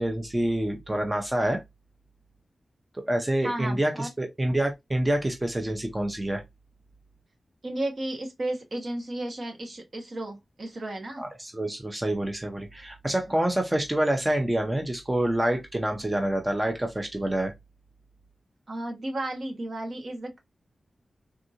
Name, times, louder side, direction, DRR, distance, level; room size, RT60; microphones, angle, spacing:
voice 1, 0.0-1.6 3.1-6.4 11.2-17.5, right 1 dB, 15° right, 0.5 m, -27 dB
voice 2, 3.4-4.1 7.6-11.2 18.7-20.4, right 1 dB, 55° right, 1.0 m, -33 dB
3.5 x 2.6 x 2.7 m
wide cardioid pair, 120°, 0 cm